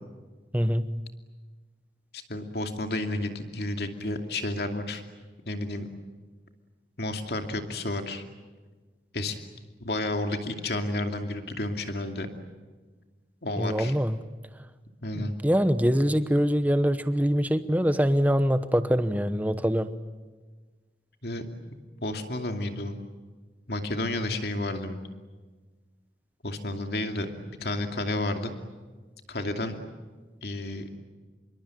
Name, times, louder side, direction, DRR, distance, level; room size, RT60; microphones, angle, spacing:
voice 1, 0.5-0.9 13.6-14.2 15.2-19.9, equal, 10° right, 11 dB, 0.9 m, -24 dB
voice 2, 2.1-5.0 5.5-5.9 7.0-8.2 9.1-9.4 9.8-12.3 13.4-13.9 15.0-15.3 21.2-21.4 22.0-23.0 23.7-25.0 26.4-27.3 27.6-28.5 29.3-29.8 30.4-31.0, left 1 dB, 65° left, 5 dB, 2.6 m, -31 dB
26.5 x 23.5 x 9.1 m, 1.3 s
head